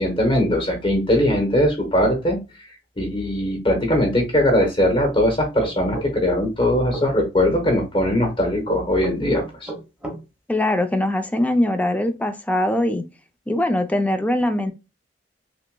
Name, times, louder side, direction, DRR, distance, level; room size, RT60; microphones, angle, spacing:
voice 1, 0.0-2.4 3.0-9.7, left 1 dB, 30° left, 0.9 m, -20 dB
sound 1, 5.6-7.1 8.6-10.2, right 2 dB, 5° right, 0.9 m, -32 dB
voice 2, 10.5-13.0 13.5-14.7, left 1 dB, 10° left, 0.4 m, -21 dB
5.8 x 2.0 x 2.2 m
head